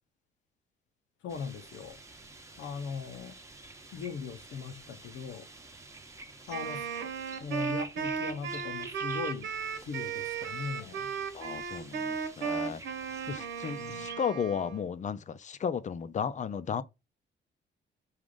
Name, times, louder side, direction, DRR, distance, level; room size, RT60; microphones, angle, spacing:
voice 1, 1.2-2.0 2.6-3.3 3.9-5.5 6.5-6.9 7.4-9.5 9.8-11.2 13.8-14.1, left 6 dB, 75° left, 0.7 m, -39 dB
sound 1, 1.3-14.2, right 3 dB, 15° right, 0.9 m, -49 dB
Wind instrument woodwind instrument, 6.5-14.9, right 6 dB, 75° right, 1.2 m, -35 dB
voice 2, 11.3-12.8 13.3-16.8, left 7 dB, 40° left, 0.5 m, -34 dB
4.9 x 2.4 x 3.7 m
cardioid pair, 90°, 20 cm